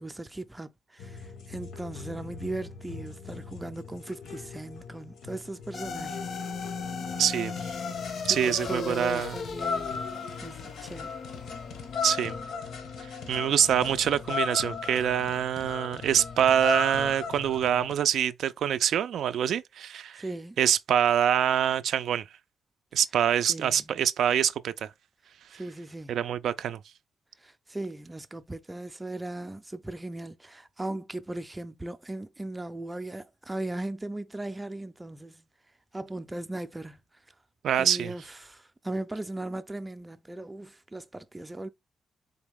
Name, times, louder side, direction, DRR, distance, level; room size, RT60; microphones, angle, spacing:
voice 1, 0.0-6.2 8.3-10.0 10.4-11.1 20.2-20.6 23.5-23.9 25.5-26.2 27.4-35.4 35.9-37.0 37.8-41.7, right 2 dB, 15° right, 0.5 m, -38 dB
sound 1, 1.0-17.9, left 5 dB, 90° left, 1.0 m, -38 dB
sound 2, 5.7-14.2, left 5 dB, 60° left, 0.5 m, -38 dB
voice 2, 7.2-7.8 8.2-9.4 12.0-12.3 13.3-20.2 20.6-22.2 22.9-24.9 25.5-25.6 26.1-26.8 37.6-38.1, right 9 dB, 80° right, 0.3 m, -25 dB
3.9 x 3.0 x 3.5 m
cardioid pair, 110°, 0 cm